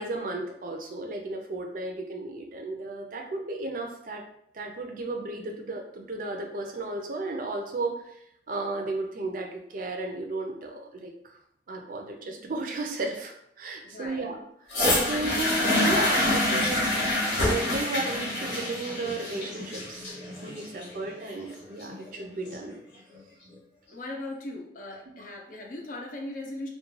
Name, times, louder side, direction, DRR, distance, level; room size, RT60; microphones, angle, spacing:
voice 1, 0.0-4.2 4.5-8.2 8.5-11.4 11.7-14.4 14.6-16.9 17.4-20.1 20.4-22.8, right 2 dB, 50° right, 3 dB, 0.4 m, -34 dB
voice 2, 13.8-14.3 23.9-26.7, left 2 dB, 45° left, 1 dB, 0.5 m, -38 dB
sound 1, 14.7-22.7 23.5-23.6, left 1 dB, 75° left, 0.9 m, -27 dB
2.3 x 2.2 x 3.0 m, 0.72 s
head